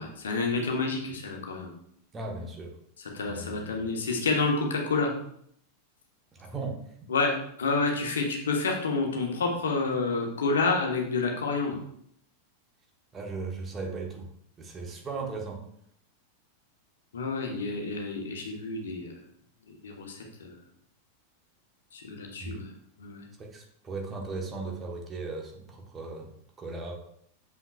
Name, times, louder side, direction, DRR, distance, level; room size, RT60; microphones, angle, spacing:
voice 1, 0.0-1.7 3.0-5.1 7.1-7.3 7.6-11.8 17.1-19.1 19.8-20.6 21.9-22.7 23.0-23.2, left 3 dB, 65° left, 1 dB, 1.2 m, -29 dB
voice 2, 2.1-2.7 3.3-3.9 6.3-7.1 13.1-14.3 14.6-15.6 22.4-22.6 23.4-26.3 26.6-27.0, right 3 dB, 20° right, 1 dB, 1.2 m, -37 dB
7.1 x 5.6 x 2.4 m, 0.67 s
figure-of-eight pair, 90°, 0 cm